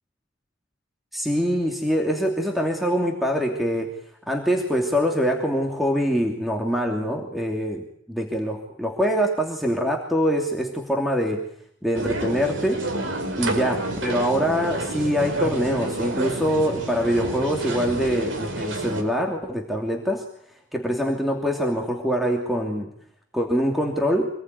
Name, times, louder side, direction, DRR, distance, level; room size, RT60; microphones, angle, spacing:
voice 1, 1.1-3.9 4.3-11.5 11.8-12.8 13.4-20.2 20.7-22.9 23.3-24.3, equal, ahead, 1 dB, 2.8 m, -24 dB
sound 1, 11.9-19.0, right 2 dB, 75° right, 5.0 m, -29 dB
26.5 x 20.5 x 9.6 m, 0.66 s
head